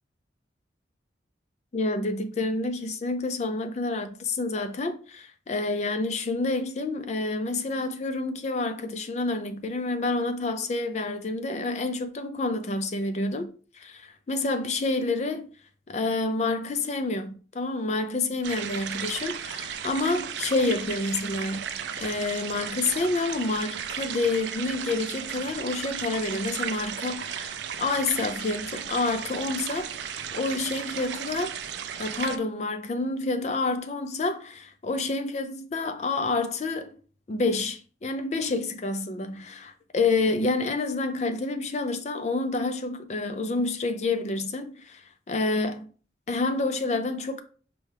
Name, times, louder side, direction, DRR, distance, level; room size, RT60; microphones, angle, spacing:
voice 1, 1.7-13.5 13.7-15.5 15.9-21.6 22.0-31.6 32.0-37.0 37.3-45.9 46.3-47.4, left 3 dB, 35° left, 0.4 m, -28 dB
sound 1, 18.4-32.4, right 8 dB, 70° right, 0.4 m, -35 dB
5.3 x 2.3 x 3.3 m
head